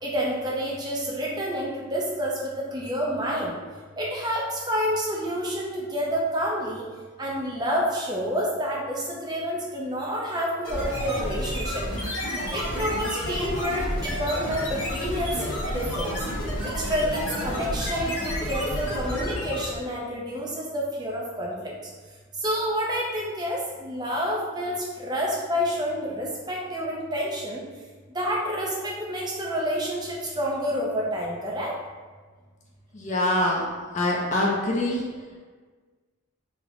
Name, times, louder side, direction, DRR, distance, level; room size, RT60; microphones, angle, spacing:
voice 1, 0.0-3.5 4.0-6.8 7.2-11.8 12.5-15.4 15.7-16.2 16.6-21.7 22.4-27.6 28.1-31.7, equal, 20° right, -3 dB, 0.5 m, -28 dB
sound 1, 10.6-19.8, equal, 55° left, 1.0 m, -30 dB
voice 2, 32.9-33.7 33.9-35.0, left 1 dB, 35° left, -3 dB, 0.4 m, -24 dB
3.2 x 2.1 x 3.6 m, 1.4 s
head